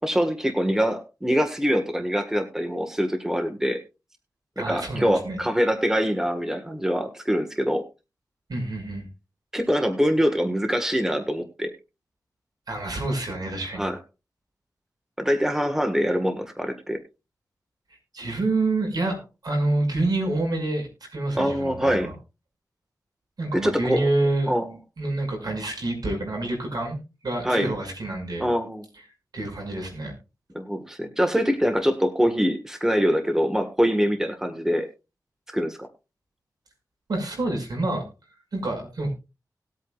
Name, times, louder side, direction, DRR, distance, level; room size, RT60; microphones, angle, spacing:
voice 1, 0.0-3.8 4.6-7.8 9.5-11.7 13.8-14.0 15.2-17.0 21.3-22.1 23.5-24.1 24.5-24.8 27.4-27.7 28.4-28.8 30.5-34.9 35.5-35.9, equal, 5° right, 6 dB, 1.6 m, -24 dB
voice 2, 4.6-5.4 8.5-9.1 12.7-13.9 18.1-22.1 23.4-24.5 25.0-28.5 29.3-30.1 37.1-38.0 38.5-39.1, right 2 dB, 75° right, 2 dB, 5.7 m, -27 dB
19.5 x 8.4 x 2.4 m, 0.29 s
wide cardioid pair, 85°, 7 cm